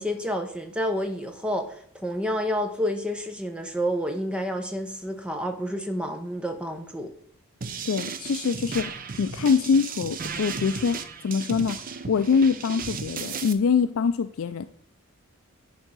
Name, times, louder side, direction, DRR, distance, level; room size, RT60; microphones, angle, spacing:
voice 1, 0.0-7.1, equal, 5° right, 6 dB, 0.8 m, -29 dB
sound 1, 7.6-13.5, right 5 dB, 40° right, 0.6 m, -35 dB
voice 2, 7.9-14.7, left 5 dB, 65° left, 10 dB, 0.4 m, -24 dB
10.0 x 3.7 x 6.2 m, 0.62 s
head